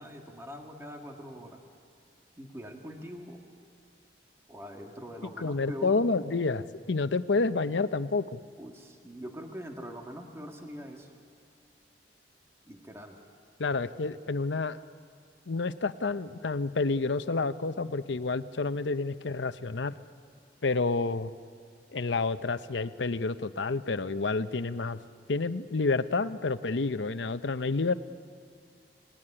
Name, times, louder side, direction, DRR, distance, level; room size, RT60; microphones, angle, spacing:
voice 1, 0.0-1.6 2.4-3.5 4.5-6.0 8.6-11.1 12.7-13.2, equal, 15° right, 2 dB, 1.9 m, -43 dB
voice 2, 5.4-8.4 13.6-14.8 15.5-19.9 20.6-21.3 21.9-25.0 25.3-27.9, left 3 dB, 85° left, 12 dB, 0.7 m, -29 dB
28.5 x 18.5 x 10.0 m, 2.3 s
head